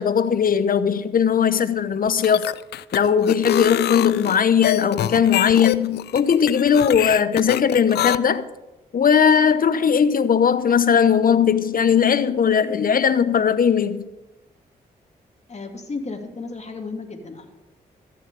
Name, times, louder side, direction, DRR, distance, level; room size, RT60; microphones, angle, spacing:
voice 1, 0.0-2.5 2.9-8.5 8.9-14.0, left 7 dB, 55° left, 1.0 m, -18 dB
sound 1, 2.1-8.2, left 12 dB, 80° left, 0.4 m, -25 dB
voice 2, 15.5-17.6, left 3 dB, 40° left, 2.7 m, -33 dB
14.0 x 6.6 x 8.4 m
supercardioid pair, 50°, 17 cm